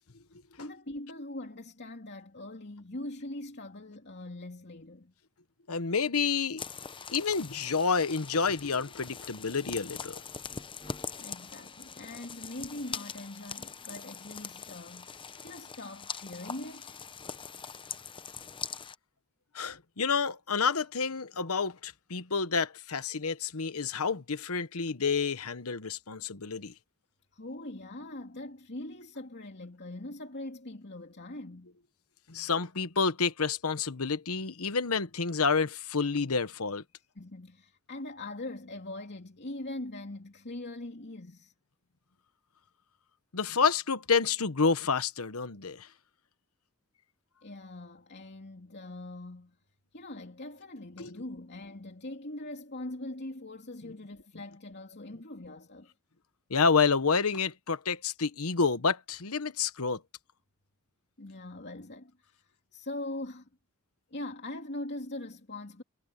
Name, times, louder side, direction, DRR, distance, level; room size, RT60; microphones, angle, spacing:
voice 1, 0.6-5.1 11.2-17.0 27.3-31.8 37.1-41.5 47.4-49.6 49.9-55.9 61.2-63.5 64.1-65.8, left 1 dB, 50° left, 2.8 m, -42 dB
voice 2, 5.7-6.6 7.1-10.2 19.5-26.7 32.3-36.8 43.3-45.9 51.0-51.1 56.5-60.0, left 5 dB, 80° left, 1.1 m, -29 dB
sound 1, 6.6-19.0, left 6 dB, 25° left, 0.8 m, -42 dB
head